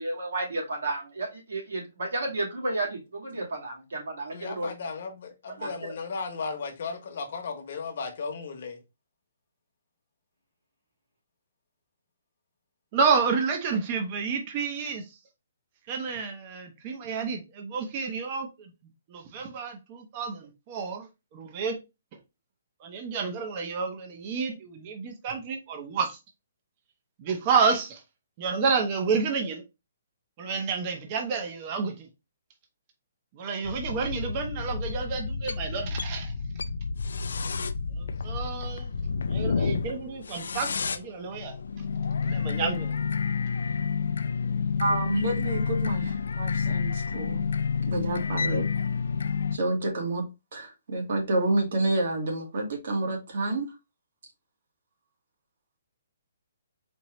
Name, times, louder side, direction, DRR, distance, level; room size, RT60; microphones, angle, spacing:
voice 1, 0.0-4.7 5.6-5.7, right 2 dB, 85° right, 2.2 m, -32 dB
voice 2, 4.3-8.8, left 4 dB, 50° left, 1.0 m, -35 dB
voice 3, 12.9-15.0 15.9-18.7 19.1-21.8 22.8-26.2 27.2-28.0 28.4-29.6 30.4-32.1 33.3-36.3 38.0-38.9 39.3-41.5 42.2-42.9, right 5 dB, 25° right, 0.7 m, -30 dB
sound 1, 33.6-49.6, left 5 dB, 85° left, 0.4 m, -30 dB
voice 4, 44.8-47.5 47.9-48.6 49.5-50.2 50.5-53.7, right 2 dB, 55° right, 1.5 m, -28 dB
4.3 x 2.9 x 3.0 m
hypercardioid pair, 170°, 0 cm